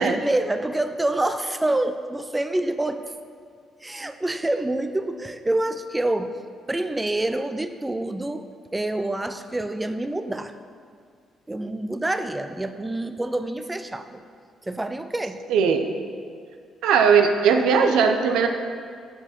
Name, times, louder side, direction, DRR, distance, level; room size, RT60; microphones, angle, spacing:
voice 1, 0.0-3.0 3.8-6.4 6.7-8.5 8.7-10.5 11.5-14.2 14.6-15.4, right 1 dB, 15° right, 9 dB, 0.4 m, -27 dB
voice 2, 15.5-15.8 16.8-18.5, right 6 dB, 90° right, 6 dB, 0.7 m, -18 dB
6.9 x 6.6 x 6.0 m, 2.1 s
cardioid pair, 90°, 0 cm